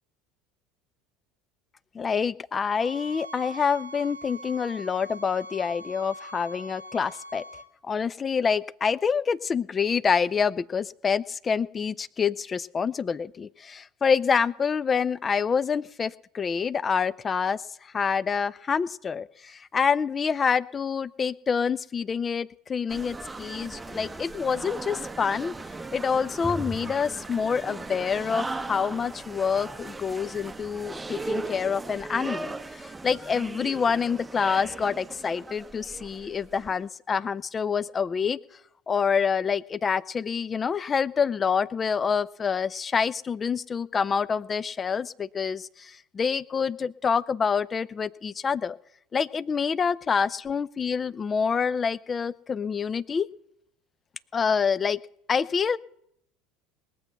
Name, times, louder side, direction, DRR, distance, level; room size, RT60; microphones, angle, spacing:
voice 1, 1.9-7.4 7.8-25.5 25.9-38.4 38.9-48.8 49.1-53.3 54.3-55.0 55.3-55.8, left 6 dB, 30° left, 20 dB, 0.5 m, -27 dB
sound 1, 2.7-7.7, right 1 dB, 85° right, 0.8 m, -42 dB
sound 2, 22.9-36.7, right 3 dB, 15° right, 0.8 m, -37 dB
21.0 x 7.8 x 5.8 m, 0.74 s
figure-of-eight pair, 70°, 0 cm